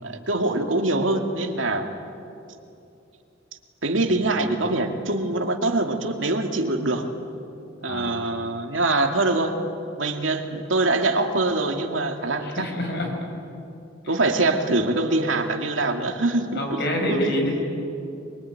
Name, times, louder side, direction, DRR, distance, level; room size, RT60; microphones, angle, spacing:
voice 1, 0.0-1.9 3.8-7.1 7.8-9.6 10.0-12.7 14.1-16.8 17.1-17.3, right 2 dB, 85° right, 4 dB, 2.2 m, -24 dB
voice 2, 7.8-8.1 12.4-13.1 14.0-14.1 16.5-17.6, equal, 60° left, 1 dB, 6.3 m, -26 dB
23.5 x 23.0 x 9.6 m, 2.7 s
head